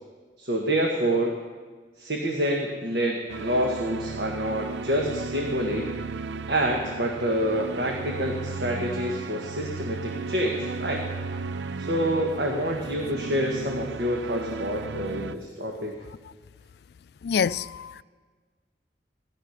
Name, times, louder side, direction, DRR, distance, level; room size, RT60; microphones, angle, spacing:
voice 1, 0.4-1.4 2.0-5.9 6.5-11.0 11.8-16.0, equal, 65° right, 1.4 m, -27 dB
sound 1, 3.3-15.4, right 4 dB, 85° right, 0.5 m, -35 dB
voice 2, 17.2-18.0, left 6 dB, 65° left, 0.3 m, -26 dB
16.0 x 11.5 x 5.8 m
head